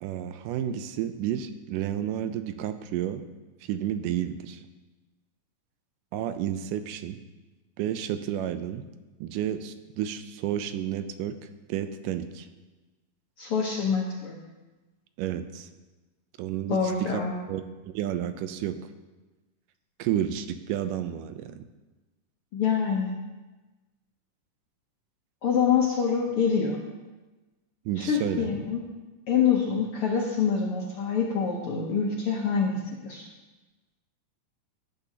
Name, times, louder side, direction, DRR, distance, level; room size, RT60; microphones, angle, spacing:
voice 1, 0.0-3.3 3.6-4.6 6.1-7.2 7.8-8.9 9.2-11.4 11.7-12.5 15.2-15.7 16.4-17.2 17.5-18.8 20.0-21.6 27.9-28.5, right 10 dB, 85° right, 10 dB, 2.2 m, -31 dB
voice 2, 13.4-14.4 16.7-17.3 22.5-23.1 25.4-26.8 28.0-28.8 29.3-32.7 33.0-33.3, left 6 dB, 70° left, -1 dB, 1.4 m, -25 dB
16.5 x 8.4 x 2.9 m, 1.2 s
omnidirectional pair, 3.7 m